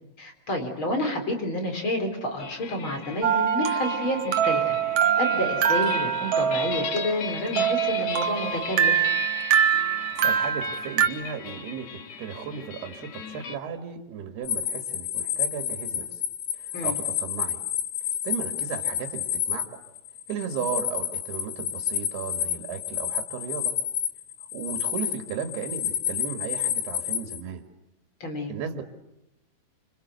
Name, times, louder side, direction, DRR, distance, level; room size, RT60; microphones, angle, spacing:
voice 1, 0.2-4.8 5.2-9.0 16.7-17.0 28.2-28.5, left 1 dB, 30° left, 4 dB, 4.5 m, -29 dB
sound 1, 2.4-13.6, left 7 dB, 50° left, 2.4 m, -37 dB
sound 2, 3.2-11.1, right 8 dB, 60° right, 2.3 m, -24 dB
voice 2, 10.2-16.2 16.5-17.6 18.2-19.8 20.3-23.7 24.5-27.6 28.5-28.8, right 7 dB, 80° right, 5 dB, 3.8 m, -35 dB
sound 3, 14.5-27.4, left 10 dB, 90° left, 3.6 m, -30 dB
27.5 x 26.0 x 8.1 m, 0.89 s
omnidirectional pair, 4.5 m